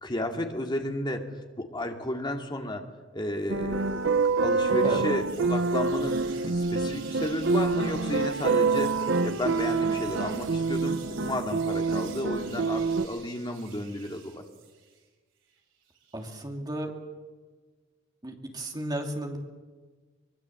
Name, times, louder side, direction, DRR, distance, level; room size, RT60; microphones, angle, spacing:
voice 1, 0.0-1.2 1.6-2.8 3.1-4.0 4.4-6.2 6.4-8.9 9.2-14.5, left 1 dB, 25° left, 3 dB, 2.3 m, -32 dB
sound 1, 3.4-15.1 15.5-16.4, right 8 dB, 85° right, 5.8 m, -49 dB
sound 2, 3.5-13.1, right 4 dB, 65° right, 0.8 m, -26 dB
voice 2, 16.1-16.9 18.2-19.4, right 1 dB, 20° right, 2 dB, 2.9 m, -33 dB
24.0 x 22.0 x 7.7 m, 1.4 s
head